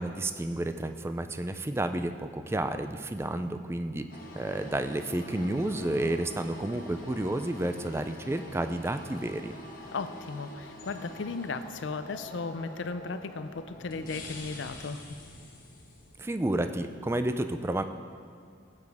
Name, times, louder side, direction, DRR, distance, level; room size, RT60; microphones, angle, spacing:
voice 1, 0.0-4.1 4.3-9.5 16.2-17.8, right 1 dB, 15° right, 9 dB, 0.3 m, -31 dB
sound 1, 4.1-16.3, left 1 dB, 45° left, 1.4 m, -46 dB
voice 2, 9.9-15.0, left 4 dB, 65° left, 11 dB, 0.5 m, -36 dB
15.5 x 8.4 x 3.5 m, 2.4 s
head